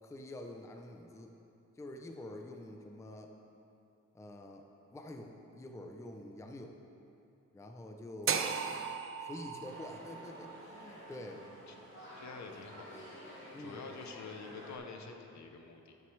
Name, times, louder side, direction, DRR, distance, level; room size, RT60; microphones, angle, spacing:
voice 1, 0.0-1.3 1.8-3.3 4.1-6.8 7.5-8.6 9.2-11.5 13.5-13.8, left 1 dB, 10° left, 4 dB, 0.4 m, -47 dB
sound 1, 8.3-12.4, right 6 dB, 45° right, 0.5 m, -38 dB
sound 2, 9.6-14.8, left 1 dB, 40° left, 2.1 m, -51 dB
voice 2, 11.4-11.7 12.2-12.9 13.6-16.0, left 4 dB, 65° left, 4 dB, 0.8 m, -47 dB
9.4 x 9.0 x 3.2 m, 2.7 s
wide cardioid pair, 140°, 31 cm